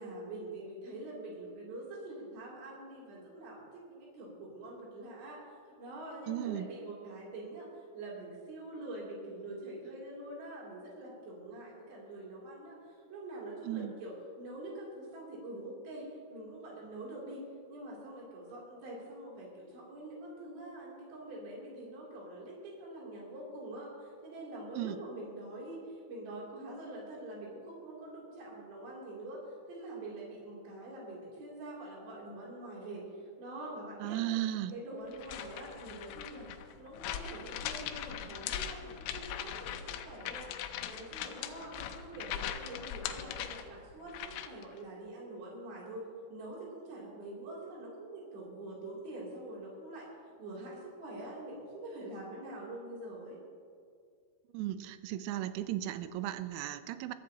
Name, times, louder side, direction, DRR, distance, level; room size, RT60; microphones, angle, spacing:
voice 1, 0.0-5.4 5.8-7.7 7.9-17.4 17.7-29.4 29.7-34.4 34.7-36.5 36.8-40.5 40.8-50.1 50.4-53.4, right 1 dB, 60° right, -4 dB, 5.1 m, -45 dB
voice 2, 6.3-6.7 13.6-14.0 24.7-25.0 34.0-34.7 54.5-57.1, right 13 dB, 85° right, 12 dB, 3.3 m, -35 dB
sound 1, 35.1-44.6, left 10 dB, 85° left, 2.5 m, -40 dB
22.0 x 13.5 x 2.9 m, 2.2 s
omnidirectional pair, 5.9 m